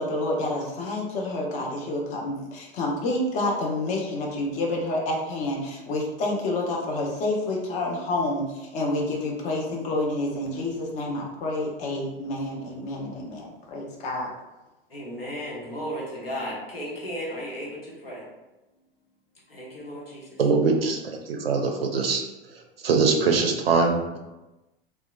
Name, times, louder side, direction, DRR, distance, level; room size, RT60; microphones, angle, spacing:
voice 1, 0.0-14.3, left 2 dB, 25° left, -1 dB, 0.5 m, -28 dB
voice 2, 14.9-18.2 19.5-20.3, equal, 75° left, -5 dB, 0.9 m, -35 dB
voice 3, 20.4-22.2 22.8-24.2, right 4 dB, 75° right, 3 dB, 0.5 m, -22 dB
2.7 x 2.0 x 2.3 m, 1.0 s
figure-of-eight pair, 90°, 30 cm